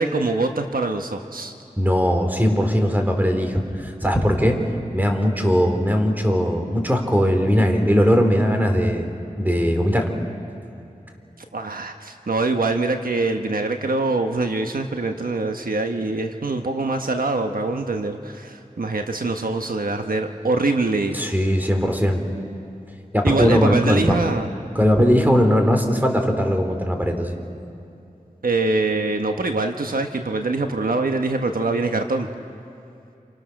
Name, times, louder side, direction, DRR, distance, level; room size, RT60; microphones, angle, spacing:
voice 1, 0.0-1.5 11.5-21.2 23.2-24.5 28.4-32.3, right 3 dB, 80° right, 5 dB, 1.2 m, -24 dB
voice 2, 1.8-4.6 4.9-9.1 9.4-10.1 21.1-22.2 23.1-24.2 24.8-27.3, equal, 10° right, 4 dB, 3.4 m, -19 dB
28.5 x 26.5 x 6.5 m, 2.7 s
wide cardioid pair, 50°, 15 cm